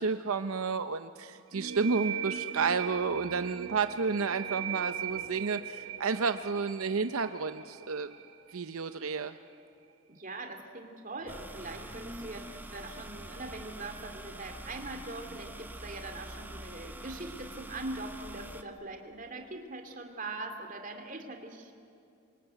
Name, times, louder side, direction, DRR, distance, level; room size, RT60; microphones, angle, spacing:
voice 1, 0.0-8.1 8.5-9.3, right 5 dB, 80° right, 10 dB, 0.7 m, -31 dB
sound 1, 1.5-8.9, right 8 dB, 65° right, 1.3 m, -39 dB
voice 2, 10.1-21.7, right 2 dB, 40° right, 5 dB, 2.7 m, -42 dB
sound 2, 11.3-18.6, right 1 dB, 10° right, 1.0 m, -45 dB
27.0 x 23.5 x 9.1 m, 2.5 s
head